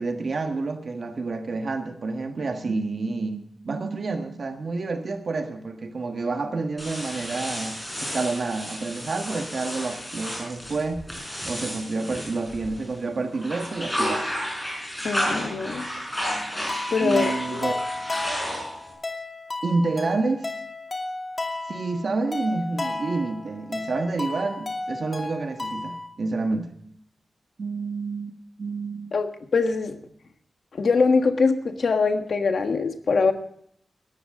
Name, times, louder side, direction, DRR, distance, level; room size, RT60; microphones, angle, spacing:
voice 1, 0.0-11.1 11.4-14.3 17.0-17.8 19.6-20.5 21.7-26.7 27.6-29.1, right 3 dB, 55° right, 5 dB, 1.5 m, -29 dB
sound 1, 6.8-13.0 13.3-18.9, equal, 10° left, 6.0 m, -32 dB
voice 2, 15.0-15.9 16.9-17.7 29.1-30.0 30.8-33.3, left 4 dB, 60° left, 6 dB, 1.5 m, -23 dB
sound 2, 16.7-26.1, left 2 dB, 30° left, 2.6 m, -33 dB
18.5 x 13.0 x 3.7 m, 0.69 s
wide cardioid pair, 175°, 0 cm